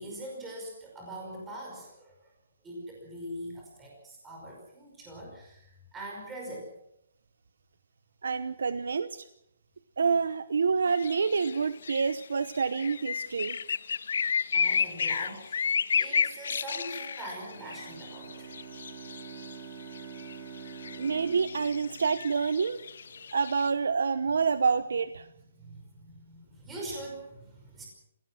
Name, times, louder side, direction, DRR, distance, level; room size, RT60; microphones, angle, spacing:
voice 1, 0.0-2.3 2.6-6.8 14.5-18.5 25.6-27.9, right 1 dB, 10° right, -1 dB, 5.3 m, -42 dB
voice 2, 8.2-9.2 10.0-13.6 21.0-22.8 23.3-25.3, right 5 dB, 90° right, 13 dB, 0.9 m, -27 dB
sound 1, 10.9-23.7, left 6 dB, 65° left, 0.8 m, -32 dB
Bowed string instrument, 17.5-23.0, right 7 dB, 25° right, 3.2 m, -46 dB
26.0 x 17.0 x 6.3 m, 0.80 s
hypercardioid pair, 175°, 0 cm